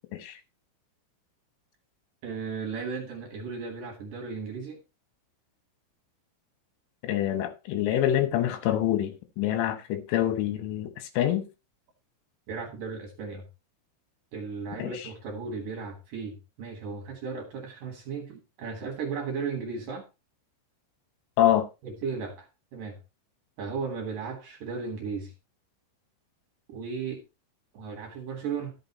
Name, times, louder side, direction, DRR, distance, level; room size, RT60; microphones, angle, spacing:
voice 1, 2.2-4.8 12.5-13.4 14.3-20.0 21.8-22.5 22.7-23.0 23.6-25.3 26.7-27.2 27.7-28.8, right 5 dB, 60° right, 2.5 m, -35 dB
voice 2, 7.0-11.5 14.8-14.9 21.4-21.7, left 12 dB, 80° left, 3.6 m, -26 dB
13.5 x 5.9 x 4.0 m
omnidirectional pair, 5.6 m